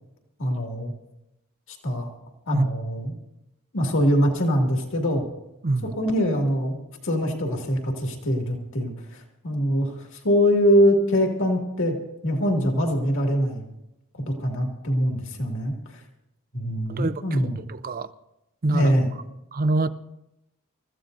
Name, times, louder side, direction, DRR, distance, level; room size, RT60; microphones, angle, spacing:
voice 1, 0.4-0.9 1.8-2.1 2.5-3.2 3.7-5.2 6.0-12.0 12.2-13.7 14.1-16.0 16.5-17.6 18.7-19.1, equal, 60° left, 2.2 m, -23 dB
voice 2, 5.6-6.0 16.9-17.4 17.7-18.1 18.6-18.9 19.5-19.9, right 2 dB, 40° right, 0.6 m, -24 dB
28.0 x 14.5 x 2.6 m
head